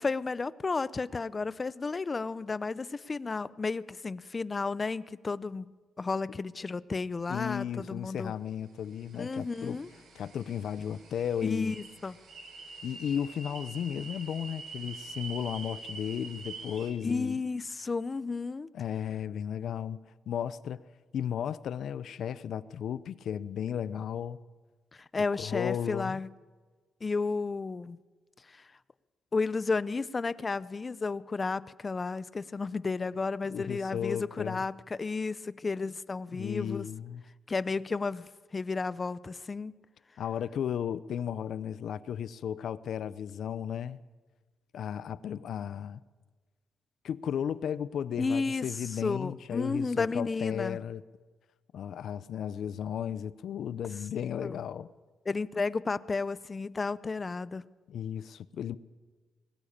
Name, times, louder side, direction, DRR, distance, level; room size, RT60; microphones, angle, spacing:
voice 1, 0.0-5.7 6.0-8.3 9.2-9.9 11.4-12.2 17.0-18.7 25.1-26.3 27.0-28.0 28.5-28.6 29.3-36.9 37.5-39.7 48.2-48.7 49.0-50.8 54.4-54.6 55.3-57.6, left 4 dB, 30° left, 0.6 m, -32 dB
voice 2, 7.3-9.8 10.1-11.8 12.8-17.4 18.7-20.8 21.1-24.4 25.4-26.2 33.5-34.6 36.3-37.2 40.2-44.0 44.7-46.0 47.0-51.0 51.7-54.9 57.9-58.8, left 9 dB, 70° left, 0.7 m, -34 dB
sound 1, 8.8-16.9, right 3 dB, 65° right, 4.3 m, -46 dB
20.0 x 17.0 x 8.7 m
cardioid pair, 115°, 0 cm